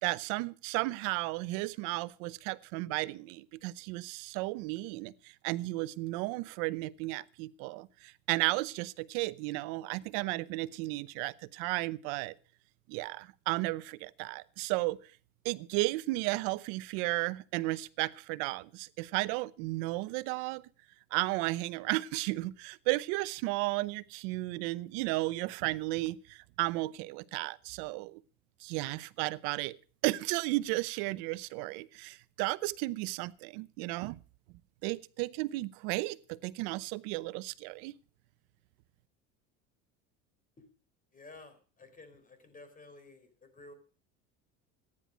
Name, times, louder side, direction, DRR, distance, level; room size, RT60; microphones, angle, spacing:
voice 1, 0.0-12.3 12.9-15.0 15.4-20.6 21.1-28.2 28.6-29.8 30.0-34.2 34.8-37.9, right 21 dB, 75° right, 0.9 m, -34 dB
voice 2, 41.1-43.7, left 2 dB, 20° left, 4.1 m, -53 dB
14.5 x 10.0 x 6.2 m
supercardioid pair, 100°, 36 cm